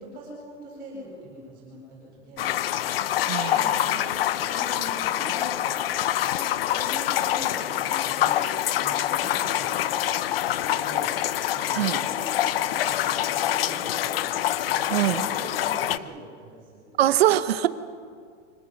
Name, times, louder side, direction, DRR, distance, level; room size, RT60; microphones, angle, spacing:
voice 1, 0.0-2.5 3.5-6.4 6.7-8.4 8.8-11.1 11.5-14.2 14.6-16.8, right 1 dB, 25° right, -4 dB, 7.9 m, -43 dB
sound 1, 2.4-16.0, left 12 dB, 55° left, 0.6 m, -26 dB
voice 2, 3.2-3.9 11.7-12.0 14.9-15.2 17.0-17.7, right 13 dB, 60° right, 14 dB, 1.0 m, -23 dB
25.0 x 19.0 x 6.5 m, 2.1 s
supercardioid pair, 175°, 35 cm